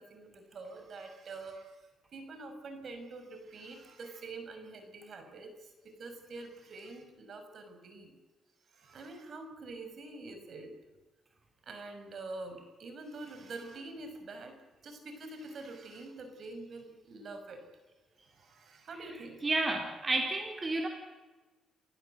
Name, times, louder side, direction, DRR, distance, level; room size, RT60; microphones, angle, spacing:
voice 1, 0.0-1.8 2.1-8.2 8.7-10.7 11.7-14.6 14.8-17.6 18.2-19.5, right 3 dB, 55° right, 7 dB, 5.9 m, -46 dB
voice 2, 18.9-20.9, right 2 dB, 25° right, 3 dB, 3.4 m, -32 dB
29.5 x 15.5 x 7.8 m, 1.2 s
cardioid pair, 90°, 0 cm